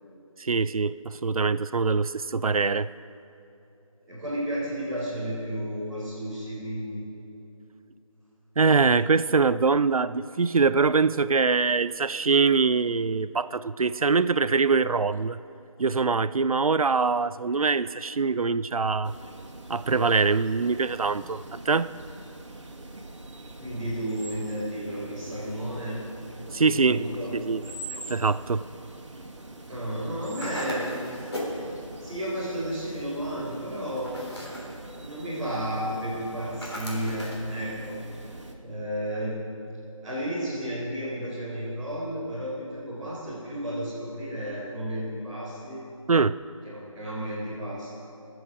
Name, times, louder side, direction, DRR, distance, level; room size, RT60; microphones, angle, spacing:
voice 1, 0.4-2.9 8.6-15.4 15.8-19.1 19.7-21.4 21.7-21.9 26.5-27.0 27.3-27.6 28.1-28.6 46.1-46.4, right 4 dB, 90° right, 15 dB, 0.4 m, -23 dB
voice 2, 4.1-7.0 23.6-26.0 26.4-27.3 29.7-31.0 32.0-34.3 35.0-38.0 38.6-39.4 40.0-45.8 46.7-47.9, equal, ahead, -17 dB, 0.9 m, -32 dB
sound 1, 19.0-38.6, right 2 dB, 55° right, 1.5 m, -43 dB
sound 2, 30.4-31.6 34.0-34.7 36.6-37.5, left 1 dB, 50° left, 3.3 m, -36 dB
22.5 x 7.9 x 4.8 m, 3.0 s
figure-of-eight pair, 170°, 18 cm